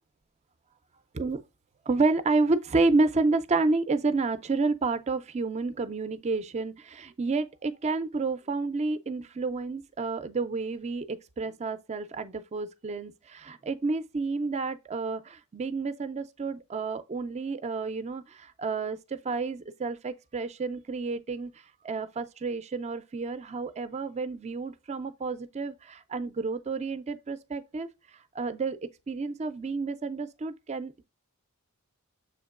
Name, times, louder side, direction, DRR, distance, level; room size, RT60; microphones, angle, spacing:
voice 1, 1.9-21.5 21.8-27.9 28.3-28.8 29.1-31.1, right 3 dB, 30° right, 0.4 m, -30 dB
6.9 x 2.9 x 2.3 m
head